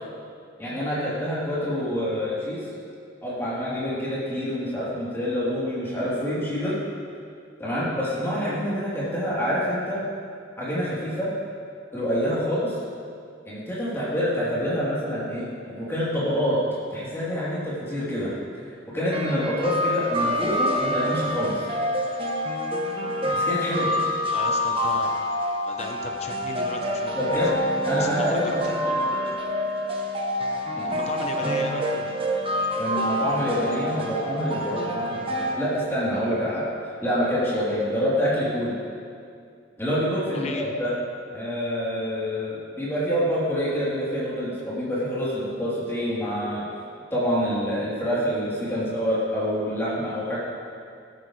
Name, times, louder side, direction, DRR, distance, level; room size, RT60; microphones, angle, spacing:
voice 1, 0.6-2.6 3.2-6.7 7.6-10.0 10.6-11.3 11.9-12.8 13.5-16.6 16.9-18.3 18.9-21.7 23.3-23.9 27.1-27.6 27.8-28.8 30.8-30.9 32.8-36.7 37.0-38.7 39.8-40.9 41.3-46.7 47.1-50.4, equal, 10° left, -9 dB, 3.5 m, -26 dB
sound 1, 19.1-35.5, equal, 25° right, 1.0 m, -27 dB
voice 2, 24.3-25.1 25.6-27.4 28.0-29.4 30.8-32.1 40.3-40.7, left 2 dB, 35° left, 3 dB, 0.9 m, -36 dB
13.5 x 12.5 x 3.3 m, 2.4 s
head